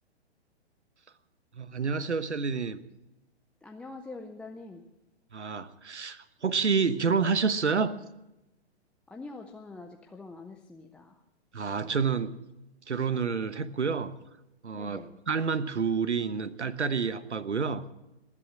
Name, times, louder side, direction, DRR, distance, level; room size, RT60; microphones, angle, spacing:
voice 1, 1.5-2.8 5.3-8.0 11.5-12.4 12.9-14.1 14.6-17.8, right 5 dB, 90° right, 14 dB, 1.1 m, -29 dB
voice 2, 3.6-4.8 9.1-11.2 14.7-15.2, left 3 dB, 5° left, 2 dB, 0.4 m, -45 dB
19.0 x 11.0 x 6.3 m, 0.96 s
hypercardioid pair, 125°, 34 cm